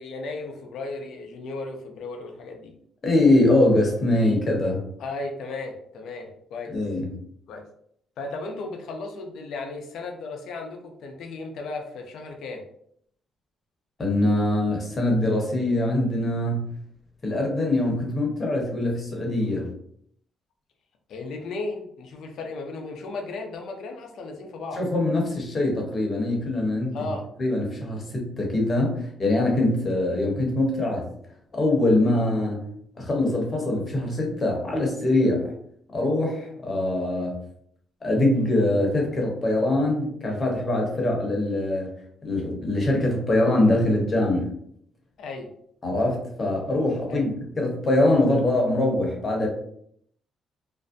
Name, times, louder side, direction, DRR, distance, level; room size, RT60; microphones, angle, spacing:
voice 1, 0.0-2.7 5.0-6.8 7.5-7.7 8.2-12.6 21.1-24.8 26.9-27.2 45.2-45.5 47.1-47.2, left 3 dB, 75° left, 3 dB, 0.5 m, -35 dB
voice 2, 3.0-4.8 6.7-7.1 14.0-16.7 17.2-19.7 24.8-27.0 27.4-31.0 31.5-32.6 33.0-35.5 35.9-37.4 38.0-41.9 42.2-44.5 45.8-49.5, left 1 dB, 35° left, -1 dB, 0.9 m, -23 dB
2.5 x 2.1 x 2.5 m, 0.68 s
cardioid pair, 90°, 0 cm